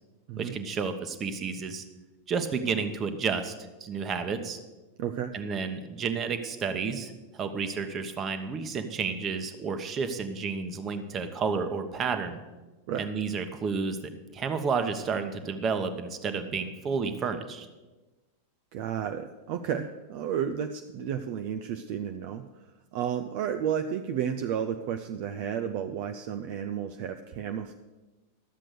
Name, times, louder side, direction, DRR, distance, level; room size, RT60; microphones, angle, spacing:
voice 1, 0.4-1.8 2.3-3.5 3.8-4.6 5.3-12.4 13.0-17.7, right 5 dB, 25° right, 8 dB, 1.1 m, -31 dB
voice 2, 5.0-5.3 12.9-13.1 18.7-22.7 22.9-27.7, right 8 dB, 45° right, 8 dB, 0.5 m, -32 dB
12.5 x 7.5 x 6.6 m, 1.2 s
figure-of-eight pair, 90°, 0 cm